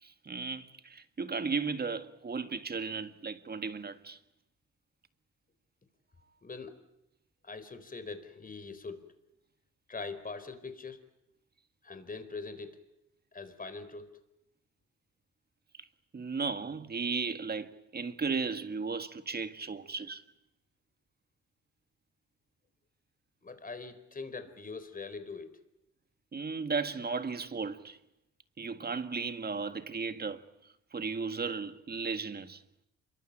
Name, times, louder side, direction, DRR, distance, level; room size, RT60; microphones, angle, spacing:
voice 1, 0.0-4.2 16.1-20.2 26.3-28.0 28.6-32.6, right 4 dB, 30° right, 1.9 m, -35 dB
voice 2, 6.4-6.8 7.4-9.1 9.9-11.0 11.8-12.8 13.3-14.2 23.4-25.6, left 4 dB, 30° left, 4.2 m, -42 dB
27.0 x 23.5 x 9.0 m
cardioid pair, 90°, 30 cm